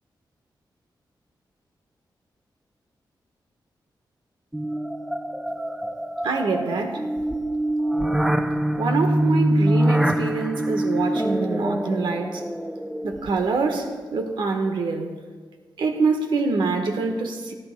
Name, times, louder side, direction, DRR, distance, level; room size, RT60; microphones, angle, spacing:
sound 1, 4.5-13.6, right 1 dB, 5° right, 0.4 m, -24 dB
voice 1, 6.2-7.0 8.8-12.4 13.0-15.1 15.8-17.5, right 4 dB, 85° right, 4 dB, 1.3 m, -25 dB
17.5 x 11.5 x 2.2 m, 1.5 s
wide cardioid pair, 135°, 8 cm